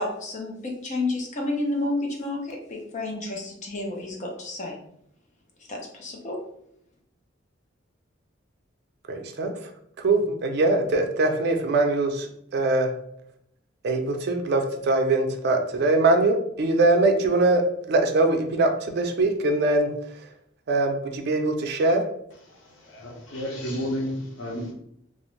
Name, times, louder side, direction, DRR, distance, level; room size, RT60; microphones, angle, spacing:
voice 1, 0.0-4.8 5.7-6.4, left 2 dB, 40° left, 0 dB, 0.6 m, -30 dB
voice 2, 9.1-9.5 10.0-12.9 13.8-19.9 20.7-22.0, right 2 dB, 60° right, 5 dB, 0.4 m, -22 dB
voice 3, 22.9-24.7, equal, 90° left, -2 dB, 0.8 m, -31 dB
2.4 x 2.0 x 3.0 m, 0.72 s
head